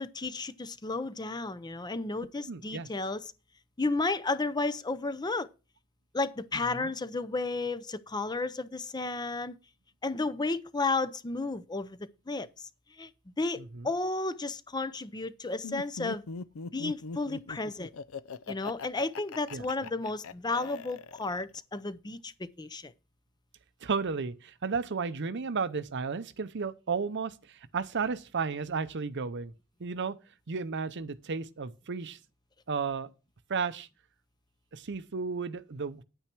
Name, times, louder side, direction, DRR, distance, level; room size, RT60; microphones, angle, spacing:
voice 1, 0.0-3.3 3.8-5.5 6.1-9.6 10.0-12.5 13.0-13.1 13.4-16.2 16.7-17.9 18.5-22.9, left 3 dB, 20° left, 0.6 m, -33 dB
voice 2, 2.5-2.9 6.7-6.9 13.7-13.9 19.5-19.6 23.8-29.5 29.8-30.2 30.5-32.2 32.7-33.1 33.5-33.9 34.7-36.0, right 5 dB, 55° right, 0.7 m, -33 dB
Laughter, 15.6-21.6, left 4 dB, 65° left, 0.5 m, -41 dB
9.7 x 9.0 x 4.5 m
head